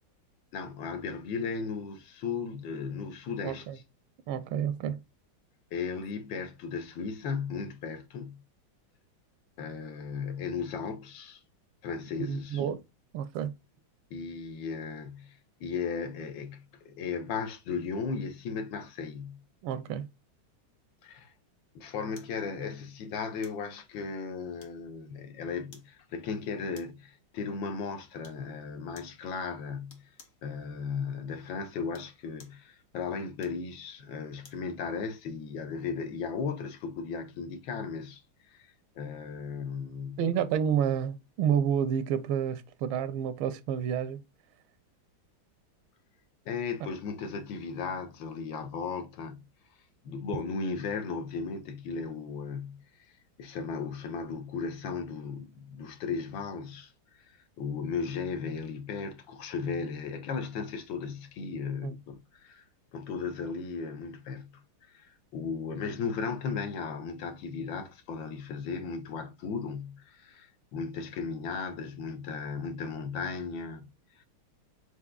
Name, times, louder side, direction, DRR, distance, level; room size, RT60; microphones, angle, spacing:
voice 1, 0.5-3.7 5.7-8.4 9.6-11.4 11.8-12.6 14.1-19.4 21.0-21.3 21.7-30.1 30.4-38.2 38.5-40.2 46.5-49.4 50.0-52.8 53.4-56.9 57.2-62.6 62.9-64.5 64.8-73.9 74.1-74.2, left 5 dB, 75° left, 1.4 m, -36 dB
voice 2, 3.4-3.8 4.3-5.0 12.2-12.8 13.1-13.5 19.6-20.1 40.2-44.2 61.8-61.9, right 8 dB, 85° right, 1.4 m, -29 dB
sound 1, 22.2-22.4 23.4-23.7 24.6-25.0 25.7-26.0 26.7-27.1 28.2-28.5 29.0-29.2 29.9-30.4 31.8-32.6 33.4-34.7 35.1-35.3, left 5 dB, 50° left, 1.0 m, -56 dB
4.6 x 3.9 x 2.3 m
omnidirectional pair, 2.2 m